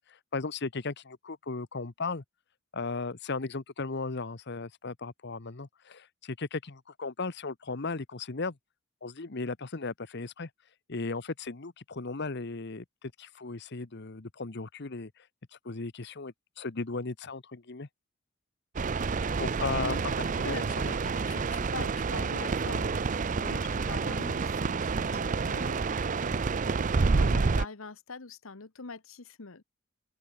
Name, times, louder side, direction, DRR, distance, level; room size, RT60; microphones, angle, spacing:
voice 1, 0.1-2.2 2.7-8.6 9.0-10.5 10.9-15.1 15.6-17.9 19.4-20.0 20.4-20.6 23.9-24.0, left 3 dB, 55° left, 1.0 m, -36 dB
sound 1, 18.8-27.7, right 4 dB, 40° right, 0.5 m, -29 dB
voice 2, 19.7-25.8 27.1-29.6, left 4 dB, 70° left, 1.3 m, -44 dB
open air
head